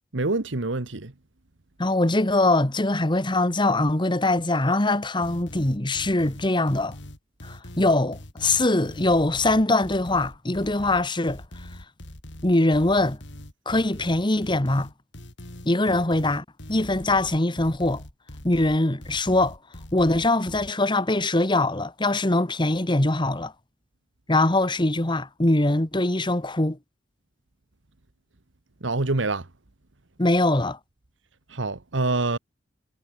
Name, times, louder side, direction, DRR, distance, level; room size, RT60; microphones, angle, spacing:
voice 1, 0.1-1.1 28.8-29.5 31.5-32.4, right 2 dB, 85° right, 1.5 m, -26 dB
voice 2, 1.8-6.9 7.4-11.4 12.4-13.2 13.6-14.9 15.6-18.0 18.4-19.6 19.9-23.5 24.3-26.8 30.2-30.8, left 2 dB, 25° left, 1.6 m, -22 dB
sound 1, 5.2-20.7, left 1 dB, 70° left, 3.4 m, -42 dB
head